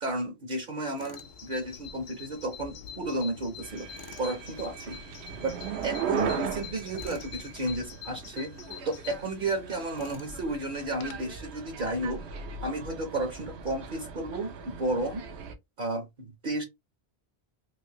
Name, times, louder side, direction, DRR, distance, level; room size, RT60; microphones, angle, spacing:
voice 1, 0.0-3.9 4.2-5.0 5.4-8.5 8.8-12.2 12.6-15.2 15.8-16.6, right 2 dB, 55° right, 0.8 m, -32 dB
Tools, 1.0-1.3 3.9-4.3 7.0-7.3 9.9-10.4, left 5 dB, 45° left, 0.4 m, -48 dB
Bird vocalization bird call bird song, 1.1-11.3, left 8 dB, 75° left, 0.8 m, -46 dB
sound 1, 3.6-15.5, right 6 dB, 85° right, 0.9 m, -38 dB
3.2 x 2.6 x 2.7 m
omnidirectional pair, 1.1 m